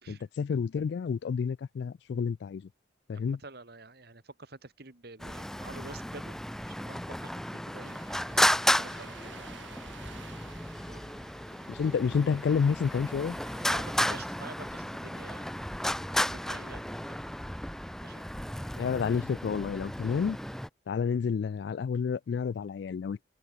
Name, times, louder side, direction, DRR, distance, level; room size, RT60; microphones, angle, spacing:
voice 1, 0.1-2.6 3.1-3.4 11.7-13.4 18.8-20.4 20.9-23.2, left 6 dB, 60° left, 0.3 m, -29 dB
voice 2, 3.1-10.1 10.9-11.2 13.7-15.7 16.3-17.4 18.0-18.2, right 3 dB, 55° right, 1.9 m, -49 dB
Traffic noise roadway noise, 5.2-20.7, left 1 dB, ahead, 0.6 m, -33 dB
sound 1, 7.8-14.2, right 4 dB, 80° right, 6.0 m, -52 dB
head